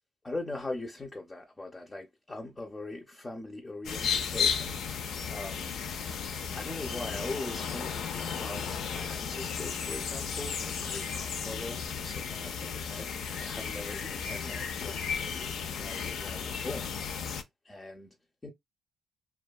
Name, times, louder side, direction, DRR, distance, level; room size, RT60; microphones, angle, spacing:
voice 1, 0.2-5.7 6.5-18.1 18.4-18.5, left 2 dB, 20° left, 0.5 m, -41 dB
sound 1, 3.8-17.4, left 6 dB, 75° left, 0.4 m, -34 dB
2.6 x 2.2 x 2.2 m
cardioid pair, 90°, 0 cm